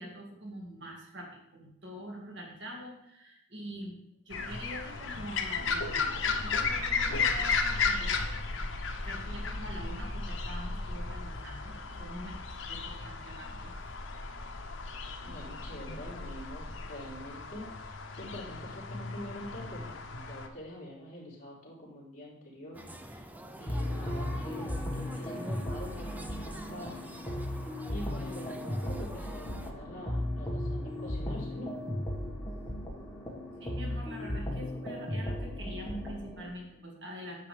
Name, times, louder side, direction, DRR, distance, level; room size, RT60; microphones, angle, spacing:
voice 1, 0.0-4.0 4.3-11.7 12.0-12.4 12.7-13.7 33.6-37.5, equal, 65° right, -1 dB, 2.0 m, -44 dB
sound 1, 4.3-20.5, left 4 dB, 75° left, 0.9 m, -34 dB
voice 2, 15.2-23.3 23.6-27.1 27.9-31.7, equal, 40° left, -5 dB, 3.2 m, -45 dB
sound 2, 22.7-29.7, right 1 dB, 10° right, 0.5 m, -46 dB
sound 3, 23.7-36.5, left 1 dB, 15° left, 1.6 m, -36 dB
9.8 x 7.6 x 3.4 m, 0.75 s
head